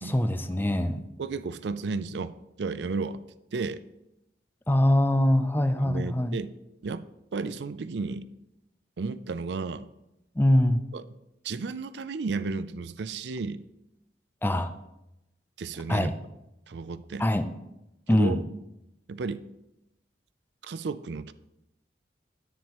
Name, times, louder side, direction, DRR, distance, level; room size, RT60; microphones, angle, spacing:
voice 1, 0.0-1.0 4.7-6.4 10.4-10.8 14.4-14.7 15.9-16.1 17.2-17.5 18.1-18.4, left 1 dB, 10° left, 10 dB, 0.5 m, -23 dB
voice 2, 1.2-3.2 3.5-3.8 5.8-6.5 6.8-7.0 7.3-8.3 9.0-9.9 10.9-11.0 11.4-13.6 15.6-16.1 16.7-17.3 18.1-18.4 19.1-19.4 20.6-21.3, right 4 dB, 70° right, 13 dB, 0.4 m, -33 dB
10.0 x 8.9 x 3.1 m, 0.89 s
head